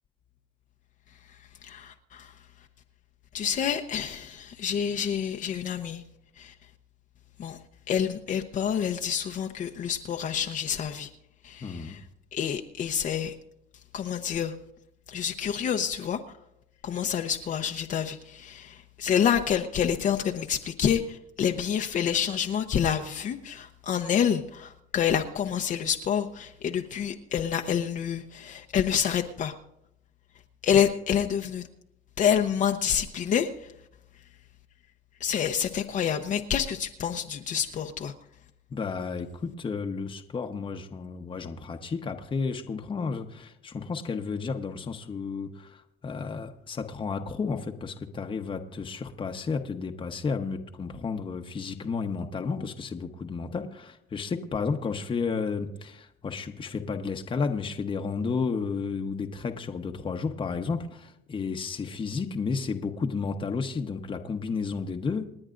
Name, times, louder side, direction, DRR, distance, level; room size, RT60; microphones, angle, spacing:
voice 1, 1.6-2.3 3.3-6.0 6.4-6.5 7.4-7.6 7.9-11.1 11.4-12.0 12.3-13.3 13.9-14.5 15.1-16.2 16.8-29.5 30.6-31.7 32.2-33.5 35.2-38.1, left 8 dB, 50° left, 4 dB, 0.8 m, -28 dB
voice 2, 11.6-12.0 38.7-65.3, left 5 dB, 30° left, 4 dB, 1.0 m, -32 dB
28.5 x 9.8 x 2.6 m, 0.81 s
cardioid pair, 110°, 17 cm